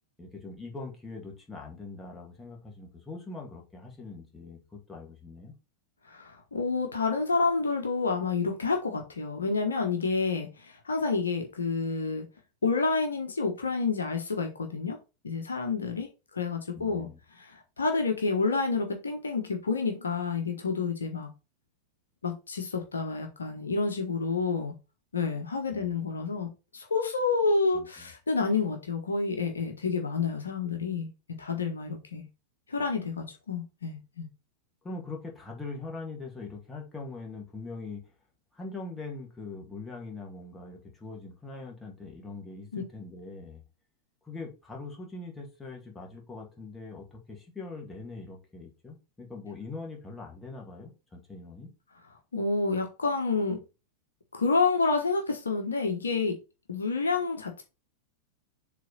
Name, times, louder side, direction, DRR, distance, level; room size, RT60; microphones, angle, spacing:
voice 1, 0.2-5.5 16.7-17.2 25.7-25.9 27.7-28.1 34.8-38.0 38.5-43.6 44.2-51.7, left 3 dB, 10° left, 2.1 m, -42 dB
voice 2, 6.1-12.2 12.6-15.0 15.2-21.3 22.2-24.8 25.1-26.5 26.7-32.3 32.7-34.3 42.7-42.8 52.3-53.6 54.3-56.4 56.7-57.6, left 4 dB, 75° left, 1.1 m, -29 dB
7.3 x 3.4 x 4.1 m
figure-of-eight pair, 90°, 0 cm